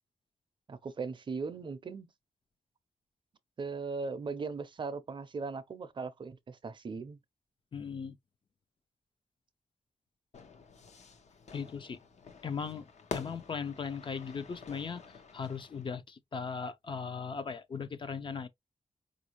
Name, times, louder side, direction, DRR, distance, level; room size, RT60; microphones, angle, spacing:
voice 1, 0.7-2.1 3.6-7.2, right 4 dB, 40° right, 0.5 m, -38 dB
voice 2, 7.7-8.2 11.5-12.0 12.4-18.5, left 6 dB, 40° left, 0.5 m, -38 dB
Fire / Fireworks, 10.3-15.9, left 5 dB, 70° left, 0.9 m, -47 dB
4.9 x 2.5 x 2.9 m
wide cardioid pair, 180°, 12 cm